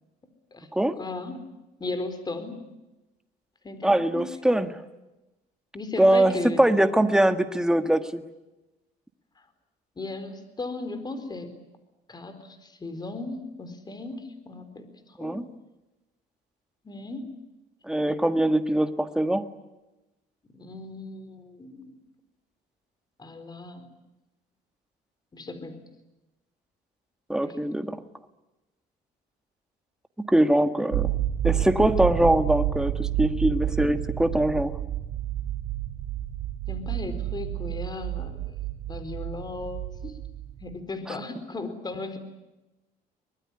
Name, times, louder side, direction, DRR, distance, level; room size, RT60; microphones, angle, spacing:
voice 1, 1.0-1.4 1.8-2.6 3.6-4.2 5.7-6.6 10.0-11.5 12.1-15.4 16.8-17.3 20.6-21.9 23.2-23.9 25.3-25.8 27.4-27.6 36.7-38.5 38.9-40.2 40.6-42.2, left 3 dB, 25° left, 10 dB, 4.3 m, -36 dB
voice 2, 3.8-4.8 6.0-8.2 15.2-15.4 17.9-19.4 27.3-28.0 30.3-31.1 31.4-34.8, right 1 dB, 5° right, 9 dB, 1.6 m, -22 dB
sound 1, 30.9-40.7, right 13 dB, 80° right, 6.9 m, -30 dB
24.0 x 20.5 x 10.0 m, 1.0 s
cardioid pair, 110°, 17 cm